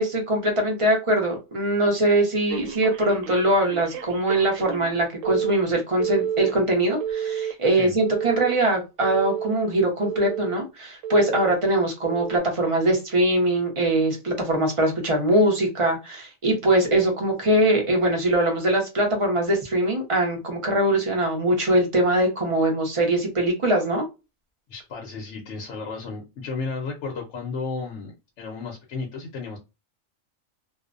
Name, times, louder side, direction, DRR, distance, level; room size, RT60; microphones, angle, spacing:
voice 1, 0.0-24.0, right 1 dB, 35° right, 1 dB, 0.6 m, -22 dB
Telephone, 2.5-5.0 5.2-5.5 6.0-6.5 7.0-7.5 8.0-8.5 9.0-9.5 10.0-10.5 11.0-11.5 12.0-12.4, right 9 dB, 85° right, 1.0 m, -30 dB
voice 2, 24.7-29.6, left 4 dB, 65° left, 0 dB, 0.9 m, -33 dB
2.5 x 2.1 x 2.4 m, 0.26 s
omnidirectional pair, 1.3 m